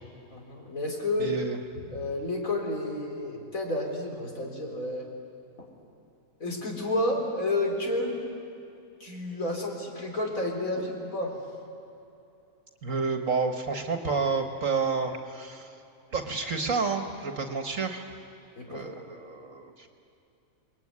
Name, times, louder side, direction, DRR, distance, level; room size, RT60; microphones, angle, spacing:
voice 1, 0.3-1.4 1.9-5.1 6.4-8.2 9.0-11.4 18.6-18.9, left 1 dB, 65° left, 1 dB, 4.5 m, -30 dB
voice 2, 1.2-1.6 12.8-15.8 16.1-18.0 18.7-19.9, right 4 dB, 60° right, 5 dB, 1.8 m, -30 dB
29.0 x 21.0 x 9.7 m, 2.8 s
omnidirectional pair, 1.6 m